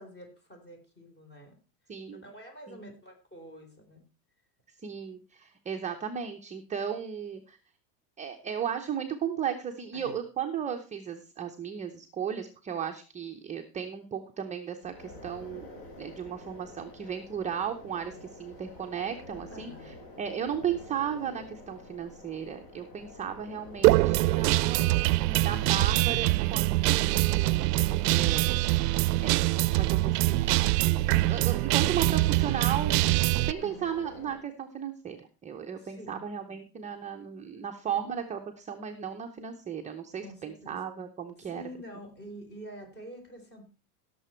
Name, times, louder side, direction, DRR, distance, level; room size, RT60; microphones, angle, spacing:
voice 1, 0.0-1.6 2.2-4.0 9.9-10.2 19.5-19.9 33.6-33.9 35.8-36.3 40.2-40.8 41.4-43.6, equal, 20° left, 4 dB, 3.9 m, -47 dB
voice 2, 1.9-2.2 2.7-2.8 4.8-7.6 8.2-15.7 16.0-24.9 25.3-27.7 28.0-28.6 29.2-41.6, right 8 dB, 15° right, 4 dB, 0.7 m, -35 dB
sound 1, 14.8-34.4, left 1 dB, 45° left, 4.8 m, -48 dB
Guitar, 23.8-33.5, right 19 dB, 75° right, 0.6 m, -24 dB
16.5 x 6.9 x 4.4 m, 0.34 s
supercardioid pair, 135°, 48 cm